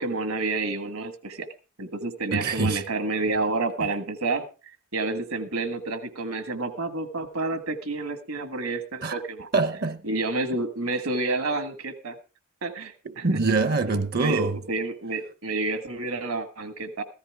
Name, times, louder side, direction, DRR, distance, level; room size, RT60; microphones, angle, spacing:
voice 1, 0.0-1.5 1.8-4.4 4.9-9.5 10.0-12.2 12.6-13.2 14.2-17.0, right 3 dB, 75° right, 1.6 m, -29 dB
voice 2, 2.3-2.8 9.0-9.2 9.5-10.0 13.0-14.6, right 3 dB, 45° right, 0.7 m, -24 dB
14.5 x 14.0 x 3.5 m
head